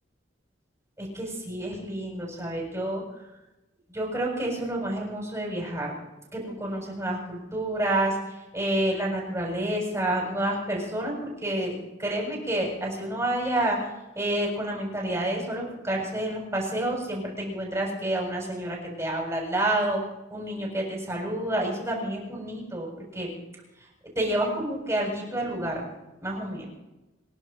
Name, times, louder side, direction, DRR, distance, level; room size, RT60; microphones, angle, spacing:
voice 1, 1.0-3.0 3.9-5.9 6.3-8.2 8.5-13.8 14.2-20.0 20.3-22.9 23.1-23.3 24.2-25.9 26.2-26.7, right 1 dB, 15° right, -2 dB, 7.4 m, -29 dB
27.5 x 11.5 x 4.5 m, 1.0 s
head